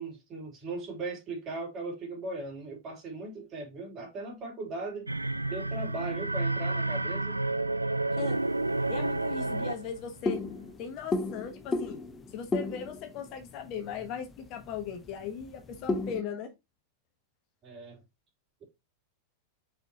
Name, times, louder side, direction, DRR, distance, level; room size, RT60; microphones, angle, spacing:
voice 1, 0.0-5.1 5.5-7.4 17.6-18.0, right 3 dB, 35° right, 3.7 m, -38 dB
sound 1, 5.1-10.0, right 2 dB, 85° right, 0.3 m, -30 dB
sound 2, 8.3-16.2, left 2 dB, 15° left, 0.9 m, -36 dB
voice 2, 8.9-10.4 10.8-12.0 12.3-16.5, left 7 dB, 40° left, 1.2 m, -38 dB
6.5 x 5.2 x 2.9 m
figure-of-eight pair, 90°, 0 cm